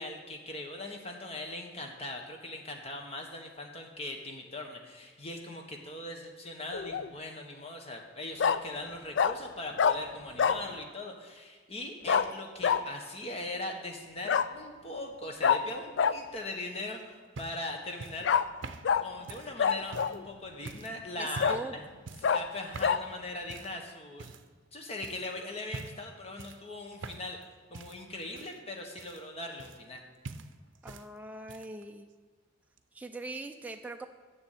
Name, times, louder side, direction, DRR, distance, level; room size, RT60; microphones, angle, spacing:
voice 1, 0.0-18.3 19.0-21.8 22.2-24.3 24.7-27.4 27.7-30.0, left 2 dB, 30° left, 2 dB, 1.2 m, -40 dB
Bark, 6.7-7.1 8.4-8.6 9.2-9.3 9.8-10.0 10.4-10.6 12.1-12.3 12.6-12.8 14.3-14.5 15.4-15.6 16.0-16.1 18.2-18.4 18.8-19.0 19.6-20.2 20.7-20.8 21.4-21.6 22.2-22.4 22.8-23.0, left 7 dB, 65° left, 0.3 m, -25 dB
sound 1, 16.8-20.2 20.7-20.9 21.3-21.7 22.1-22.4 22.7-23.0 23.5-23.8 24.2-24.7 25.0-25.3 25.7-26.1 26.4-27.4 27.7-30.0 30.2-31.1 31.3-31.8 32.8-32.9, right 4 dB, 75° right, 0.6 m, -45 dB
voice 2, 21.2-21.8 27.3-27.4 30.8-32.1 32.9-34.1, right 2 dB, 10° right, 4 dB, 0.4 m, -41 dB
7.0 x 7.0 x 7.9 m, 1.5 s
head